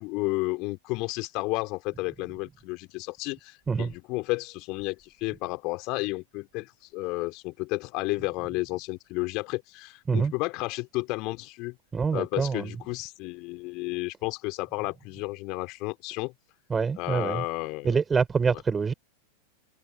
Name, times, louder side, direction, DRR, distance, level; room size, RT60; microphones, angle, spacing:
voice 1, 0.0-11.8 12.1-16.3 17.0-18.0, left 25 dB, 40° left, 3.9 m, -32 dB
voice 2, 11.9-12.7 16.7-17.4 17.8-18.9, right 5 dB, 15° right, 5.3 m, -25 dB
figure-of-eight pair, 90°, 0 cm